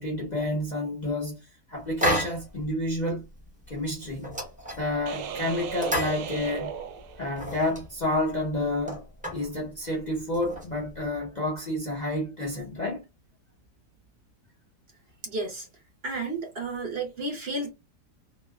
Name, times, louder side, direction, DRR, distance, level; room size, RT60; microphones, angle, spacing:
voice 1, 0.0-3.3 3.7-4.4 4.7-6.8 7.2-9.0 9.3-13.0, left 1 dB, 40° left, 0.6 m, -30 dB
sound 1, 2.0-2.7 2.9-3.0 3.5-3.7 4.0-5.1 5.6-6.8 7.1-7.9 8.4-8.5 8.7-9.5 10.2-11.0, equal, 10° right, 0.5 m, -31 dB
sound 2, 5.1-7.7, right 7 dB, 75° right, 1.1 m, -36 dB
voice 2, 15.2-15.7 16.0-17.7, right 2 dB, 55° right, 0.7 m, -32 dB
2.8 x 2.1 x 2.2 m
omnidirectional pair, 1.8 m